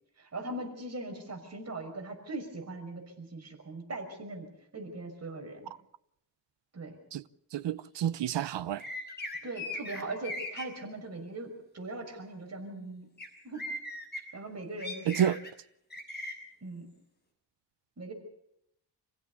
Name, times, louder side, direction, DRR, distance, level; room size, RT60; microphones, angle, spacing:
voice 1, 0.2-4.5 4.7-5.7 6.7-7.0 9.4-13.1 13.4-13.7 14.3-15.3 16.6-16.9 18.0-18.1, right 2 dB, 40° right, 5.8 m, -40 dB
voice 2, 7.5-8.8 15.1-15.4, right 10 dB, 80° right, 0.9 m, -29 dB
sound 1, 8.8-10.6 13.2-13.3 13.5-14.2 14.8-15.5 15.9-16.3, left 1 dB, 25° left, 6.3 m, -38 dB
28.0 x 16.0 x 6.9 m
wide cardioid pair, 135°, 41 cm